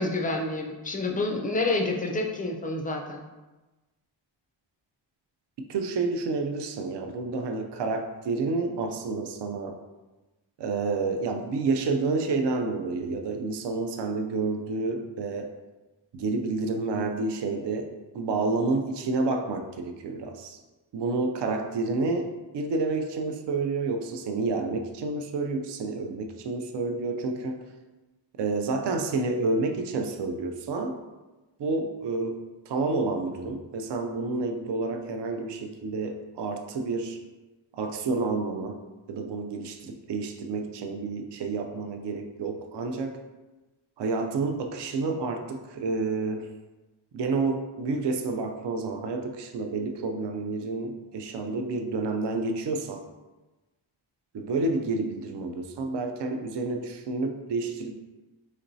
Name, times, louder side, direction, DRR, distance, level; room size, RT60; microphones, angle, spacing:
voice 1, 0.0-3.2, left 2 dB, 20° left, 2 dB, 0.3 m, -28 dB
voice 2, 5.7-9.8 10.6-15.5 16.1-20.6 20.9-22.3 22.5-27.6 28.4-31.0 31.6-37.2 37.7-38.8 39.1-43.2 44.0-46.5 47.1-53.0 54.3-57.9, right 3 dB, 60° right, 4 dB, 0.5 m, -29 dB
4.2 x 3.0 x 2.6 m, 1.1 s
wide cardioid pair, 130°, 48 cm